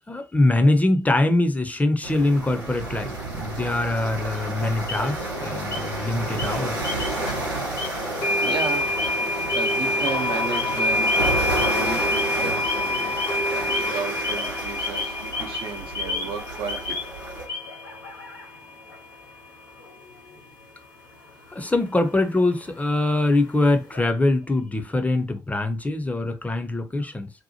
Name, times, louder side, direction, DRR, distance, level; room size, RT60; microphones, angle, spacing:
voice 1, 0.1-6.9 21.5-27.3, left 2 dB, 15° left, 0.6 m, -23 dB
sound 1, 2.0-17.5, right 2 dB, 85° right, 0.8 m, -31 dB
sound 2, 4.3-5.4 5.7-6.1 6.4-7.4 7.6-24.0, left 4 dB, 85° left, 0.5 m, -36 dB
sound 3, 7.3-7.4 8.2-19.2, left 2 dB, 60° left, 0.8 m, -27 dB
voice 2, 8.4-9.0 9.5-11.2 11.6-13.2 13.5-15.1 15.4-17.0 22.0-22.1, right 5 dB, 55° right, 0.7 m, -33 dB
2.8 x 2.1 x 2.9 m
figure-of-eight pair, 40°, 10 cm